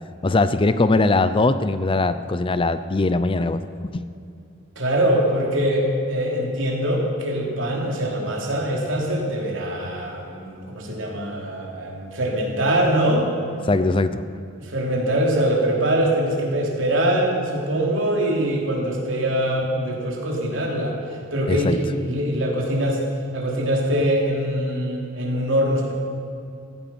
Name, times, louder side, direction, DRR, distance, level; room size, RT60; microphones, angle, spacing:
voice 1, 0.2-3.6 3.9-4.0 13.7-14.2 21.5-21.8, left 2 dB, 25° left, 12 dB, 0.5 m, -20 dB
voice 2, 4.7-13.3 14.6-23.0 23.3-25.9, right 1 dB, 75° right, -1 dB, 3.4 m, -23 dB
16.0 x 14.5 x 6.1 m, 2.5 s
head